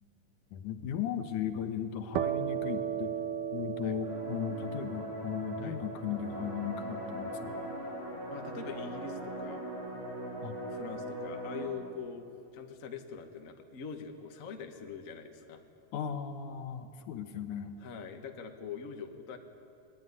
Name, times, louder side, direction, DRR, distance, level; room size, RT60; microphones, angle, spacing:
voice 1, 0.5-3.1 3.5-7.5 10.4-10.6 15.9-17.7, left 8 dB, 75° left, 7 dB, 2.5 m, -36 dB
sound 1, 2.1-9.6, right 10 dB, 90° right, 2.4 m, -38 dB
sound 2, 4.0-11.7, equal, 50° right, 7.4 m, -40 dB
voice 2, 8.3-9.6 10.7-12.3 12.5-15.6 17.8-19.4, left 6 dB, 50° left, 5 dB, 0.9 m, -43 dB
20.5 x 19.5 x 9.8 m, 2.6 s
omnidirectional pair, 3.7 m